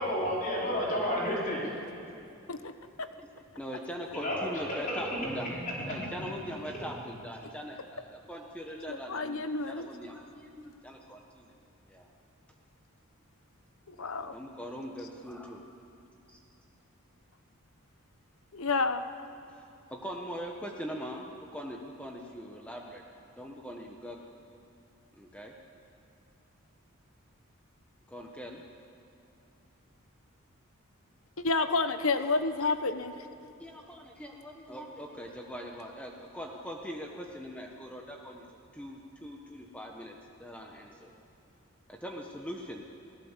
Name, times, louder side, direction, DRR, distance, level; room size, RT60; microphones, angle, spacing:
voice 1, 0.0-1.6 4.1-4.4 4.7-6.2 6.6-6.8, equal, 40° left, -5 dB, 4.7 m, -32 dB
voice 2, 3.5-11.5 11.9-12.1 13.9-15.7 16.3-16.4 19.6-23.0 23.4-24.2 25.1-25.5 28.1-28.6 33.6-41.1 41.9-42.9, equal, 5° left, 0 dB, 1.3 m, -42 dB
voice 3, 8.9-9.9 13.9-14.3 18.5-19.0 31.4-33.1, left 3 dB, 70° left, 9 dB, 1.2 m, -29 dB
28.0 x 17.5 x 7.5 m, 2.7 s
head